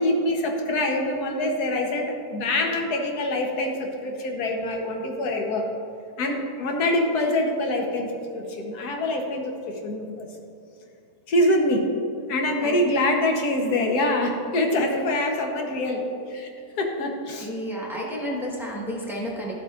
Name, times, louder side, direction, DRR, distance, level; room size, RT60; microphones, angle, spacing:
voice 1, 0.0-5.7 6.2-10.3 11.3-11.9 12.3-16.0 16.3-16.5 16.8-17.5, left 1 dB, 70° left, 2 dB, 1.5 m, -25 dB
voice 2, 17.4-19.5, equal, ahead, -4 dB, 1.2 m, -31 dB
13.0 x 7.5 x 2.5 m, 2.5 s
omnidirectional pair, 1.7 m